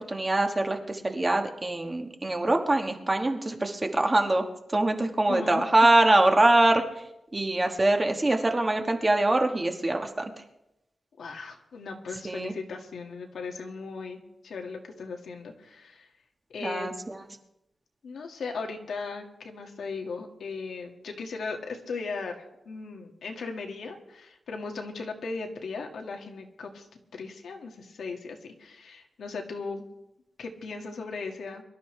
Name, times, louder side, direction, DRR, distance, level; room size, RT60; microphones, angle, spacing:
voice 1, 0.0-6.8 7.3-10.2 12.2-12.5 16.6-17.2, right 2 dB, 20° right, 4 dB, 1.4 m, -24 dB
voice 2, 5.3-5.6 11.2-16.1 16.5-16.9 18.0-26.9 27.1-29.8 30.4-31.6, left 4 dB, 90° left, 2 dB, 1.9 m, -37 dB
23.5 x 12.5 x 3.3 m, 0.88 s
wide cardioid pair, 160°, 0 cm